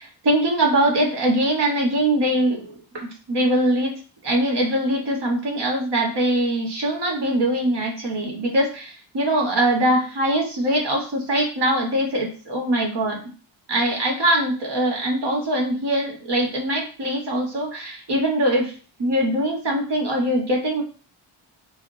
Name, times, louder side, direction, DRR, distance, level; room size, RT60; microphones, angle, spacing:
voice 1, 0.0-3.9 4.2-13.2 13.7-18.7 19.0-20.8, right 1 dB, 55° right, 0 dB, 1.4 m, -22 dB
4.7 x 2.0 x 2.7 m, 0.38 s
cardioid pair, 85°, 48 cm